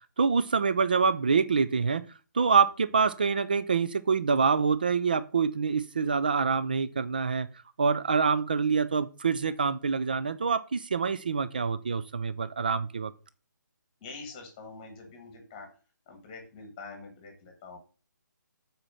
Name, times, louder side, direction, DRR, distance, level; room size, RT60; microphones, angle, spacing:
voice 1, 0.2-2.0 2.3-7.5 7.8-13.1, right 5 dB, 30° right, 0.4 m, -26 dB
voice 2, 14.0-15.7 16.1-17.8, left 4 dB, 15° left, 1.4 m, -45 dB
7.9 x 4.3 x 6.3 m
hypercardioid pair, 180°, 10 cm